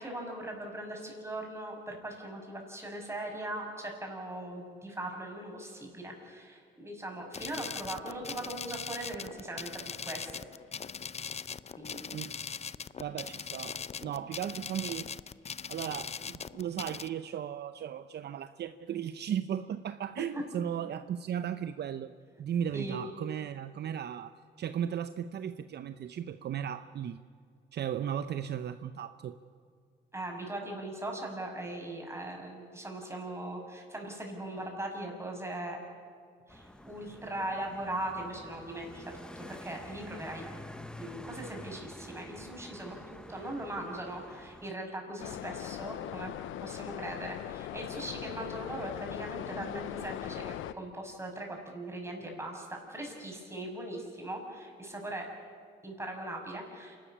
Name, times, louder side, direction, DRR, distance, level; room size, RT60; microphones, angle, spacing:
voice 1, 0.0-10.4 11.8-12.0 20.3-20.4 22.7-23.0 30.1-35.8 36.5-40.5 41.0-46.3 46.6-55.3 55.8-57.0, right 1 dB, 15° right, 1 dB, 6.1 m, -40 dB
sound 1, 7.3-17.1, left 6 dB, 35° left, 0.6 m, -41 dB
voice 2, 13.0-13.8 14.0-15.1 15.7-22.1 22.4-24.3 24.6-27.2 27.7-29.3, right 9 dB, 55° right, 11 dB, 0.7 m, -36 dB
sound 2, 36.5-44.7, left 1 dB, 5° left, 1.1 m, -48 dB
sound 3, 45.2-50.7, left 12 dB, 85° left, 0.7 m, -40 dB
27.5 x 12.5 x 8.7 m, 2.3 s
cardioid pair, 90°, 20 cm